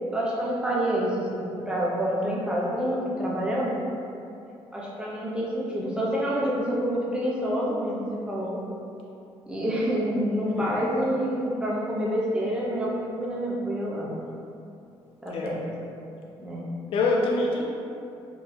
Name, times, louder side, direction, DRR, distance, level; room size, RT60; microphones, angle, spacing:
voice 1, 0.1-3.7 4.7-8.6 9.5-14.2 15.2-15.9 16.4-16.6, equal, 10° right, -5 dB, 0.8 m, -27 dB
voice 2, 16.9-17.6, left 3 dB, 65° left, -1 dB, 0.4 m, -25 dB
3.9 x 2.7 x 2.4 m, 2.6 s
cardioid pair, 90°, 10 cm